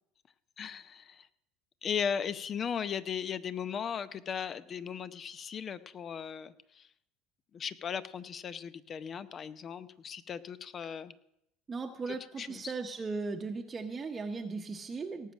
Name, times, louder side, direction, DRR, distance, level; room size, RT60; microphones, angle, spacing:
voice 1, 0.6-1.3 1.8-6.9 7.5-11.1 12.4-12.7, left 7 dB, 40° left, 14 dB, 0.7 m, -37 dB
voice 2, 11.7-15.3, right 4 dB, 30° right, 3 dB, 0.9 m, -37 dB
18.0 x 7.3 x 6.2 m, 0.81 s
hypercardioid pair, 75°, 0 cm